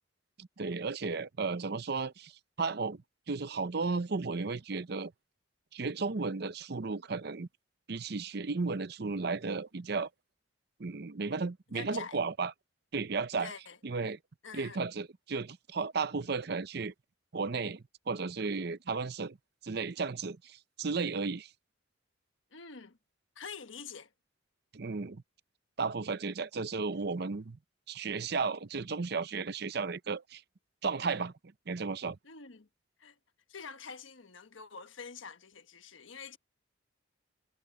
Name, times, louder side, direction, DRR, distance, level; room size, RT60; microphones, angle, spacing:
voice 1, 0.4-2.3 2.6-3.0 3.3-5.1 5.7-7.5 7.9-10.1 10.8-12.5 12.9-13.5 13.8-14.2 14.5-16.9 17.3-19.4 19.6-21.5 24.7-25.2 25.8-27.6 27.9-30.4 30.8-31.3 31.7-32.2, right 4 dB, 55° right, 0.6 m, -34 dB
voice 2, 11.7-12.2 13.4-13.8 14.4-14.8 22.5-23.0 23.3-24.1 32.2-32.7 33.0-33.2 33.5-36.4, left 5 dB, 80° left, 1.3 m, -46 dB
head